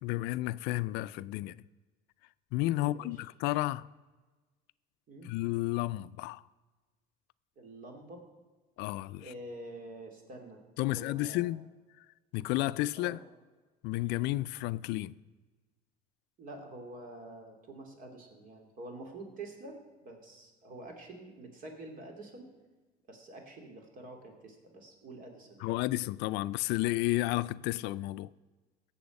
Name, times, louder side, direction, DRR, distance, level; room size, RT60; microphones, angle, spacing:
voice 1, 0.0-1.6 2.5-3.8 5.2-6.4 8.8-9.3 10.8-11.7 12.3-13.2 13.8-15.1 25.6-28.3, left 17 dB, 75° left, 0.4 m, -32 dB
voice 2, 2.8-3.2 5.1-5.3 7.6-8.2 9.2-11.5 12.9-13.2 16.4-22.5 23.1-25.8, right 2 dB, 50° right, 2.9 m, -47 dB
17.5 x 7.2 x 5.3 m
cardioid pair, 125°, 17 cm